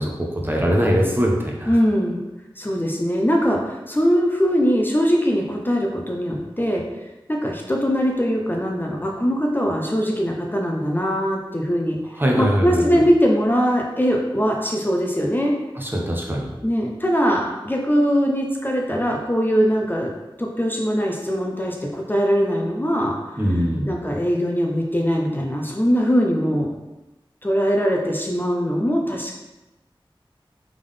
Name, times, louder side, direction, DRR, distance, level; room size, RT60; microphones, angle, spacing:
voice 1, 0.0-1.8 12.1-13.0 15.8-16.5 23.4-23.9, equal, 20° right, -1 dB, 0.8 m, -22 dB
voice 2, 1.7-2.2 2.6-6.8 7.3-12.0 12.4-15.5 16.6-20.1 20.4-23.3 23.9-26.7 27.4-29.4, equal, 20° left, 0 dB, 0.6 m, -21 dB
3.7 x 3.6 x 3.3 m, 1.0 s
wide cardioid pair, 55°, 9 cm